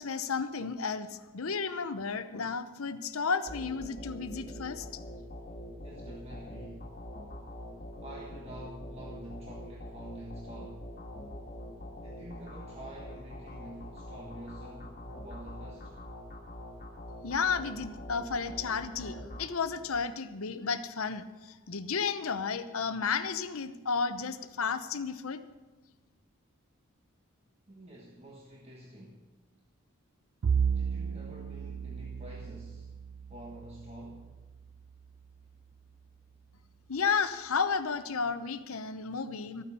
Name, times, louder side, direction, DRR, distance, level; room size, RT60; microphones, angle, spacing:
voice 1, 0.0-4.9 17.2-25.4 36.9-39.6, left 5 dB, 85° left, 11 dB, 0.9 m, -32 dB
sound 1, 3.5-20.1, left 1 dB, 40° left, 1.8 m, -44 dB
voice 2, 5.7-6.9 8.0-10.9 11.9-16.0 27.7-29.3 30.6-32.9 33.3-34.3, right 1 dB, 30° right, -2 dB, 1.4 m, -48 dB
Bowed string instrument, 30.4-35.0, right 6 dB, 75° right, 0.4 m, -34 dB
13.5 x 9.5 x 6.9 m, 1.2 s
head